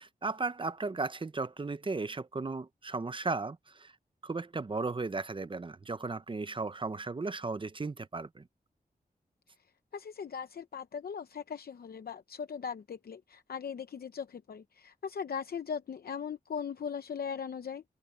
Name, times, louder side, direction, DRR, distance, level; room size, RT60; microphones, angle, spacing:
voice 1, 0.0-3.9 4.2-8.4, right 3 dB, 35° right, 0.6 m, -35 dB
voice 2, 9.9-17.8, left 6 dB, 85° left, 0.7 m, -39 dB
wide cardioid pair, 85°, 15 cm